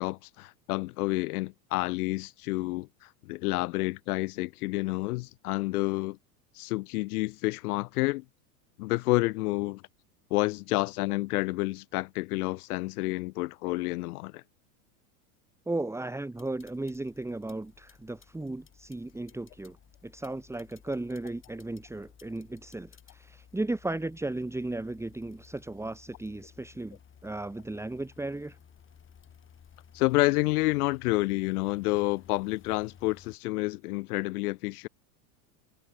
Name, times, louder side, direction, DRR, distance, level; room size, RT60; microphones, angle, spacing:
voice 1, 0.0-6.2 6.5-8.2 8.8-9.8 10.3-14.4 29.9-34.9, left 21 dB, 70° left, 1.4 m, -29 dB
voice 2, 15.7-19.8 20.0-28.6, right 2 dB, 5° right, 2.8 m, -35 dB
sound 1, 16.3-33.4, left 8 dB, 25° left, 6.5 m, -57 dB
supercardioid pair, 125°, 46 cm